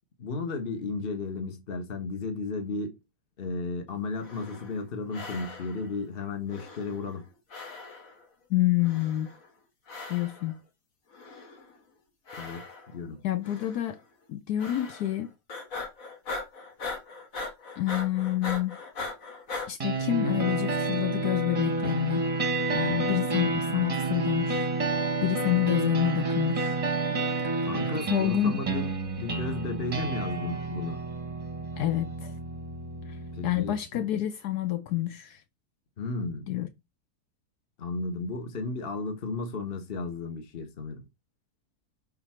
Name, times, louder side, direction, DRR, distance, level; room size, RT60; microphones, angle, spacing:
voice 1, 0.2-3.0 3.4-7.2 12.4-12.6 12.9-13.2 27.6-28.9 29.2-31.0 33.3-34.0 36.0-36.5 37.8-41.0, left 3 dB, 40° left, 1.3 m, -34 dB
sound 1, 4.1-4.8 5.1-5.9 6.5-7.2 7.5-8.2 8.8-9.5 9.9-10.5 11.1-11.8 12.3-13.0 13.4-13.9 14.6-15.2 15.5-19.7, left 3 dB, 55° left, 1.9 m, -40 dB
voice 2, 8.5-9.3 10.1-10.6 13.2-14.0 14.3-15.3 17.8-18.8 19.7-22.3 22.7-24.9 25.2-26.8 28.1-28.5 31.8-32.3 33.1-33.2 33.4-35.4 36.5-36.7, left 14 dB, 80° left, 1.2 m, -28 dB
sound 2, 19.8-33.8, right 3 dB, 25° right, 0.9 m, -30 dB
6.7 x 4.0 x 4.2 m
omnidirectional pair, 1.7 m